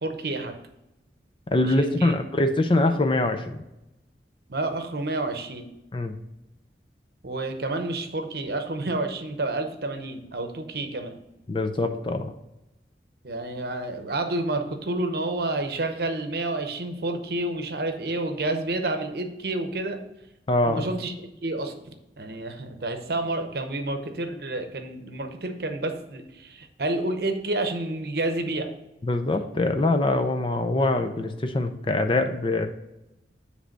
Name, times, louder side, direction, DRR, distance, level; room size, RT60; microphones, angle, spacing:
voice 1, 0.0-0.6 1.6-2.2 4.5-5.7 7.2-11.2 13.2-20.0 20.6-21.1 21.4-21.7 22.2-28.7, right 2 dB, 60° right, 6 dB, 0.8 m, -29 dB
voice 2, 1.5-3.6 5.9-6.2 11.5-12.3 20.5-20.8 29.0-32.7, left 2 dB, 30° left, 6 dB, 0.5 m, -23 dB
7.6 x 3.4 x 6.4 m, 0.90 s
head